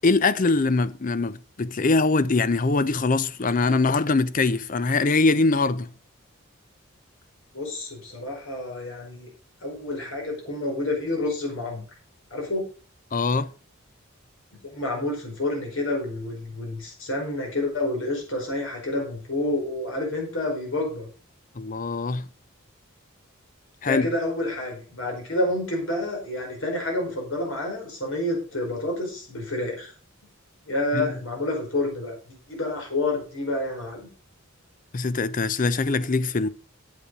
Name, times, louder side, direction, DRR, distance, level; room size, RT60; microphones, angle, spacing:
voice 1, 0.0-5.9 13.1-13.5 21.6-22.3 23.8-24.1 30.9-31.1 34.9-36.5, left 3 dB, 40° left, 0.6 m, -22 dB
voice 2, 7.5-9.3 9.6-11.8 12.3-12.6 14.6-21.1 23.9-29.9 30.7-34.1, left 2 dB, 70° left, 4.7 m, -29 dB
8.3 x 8.3 x 5.1 m
head